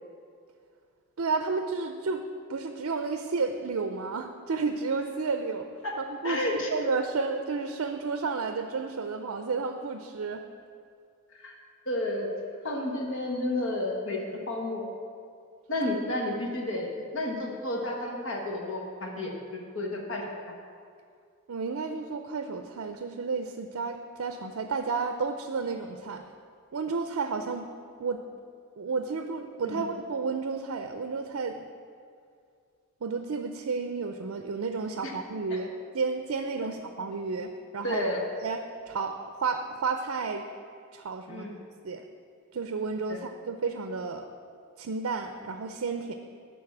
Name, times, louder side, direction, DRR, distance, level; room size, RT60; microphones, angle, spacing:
voice 1, 1.2-2.2 2.5-5.7 6.0-6.4 6.7-10.5 21.5-26.2 26.7-27.7 28.0-28.2 28.8-31.7 33.0-38.0 38.4-40.4 40.9-41.5 41.8-42.0 42.5-44.3 44.8-46.2, right 4 dB, 75° right, 6 dB, 0.5 m, -32 dB
voice 2, 6.2-6.7 11.4-11.5 11.9-12.3 12.6-14.2 14.5-14.9 15.7-19.3 19.7-20.2 29.6-29.8 35.0-35.1 37.8-38.2 41.3-41.5 43.1-43.2, left 1 dB, 65° left, 0 dB, 1.4 m, -31 dB
11.5 x 4.0 x 7.2 m, 2.3 s
head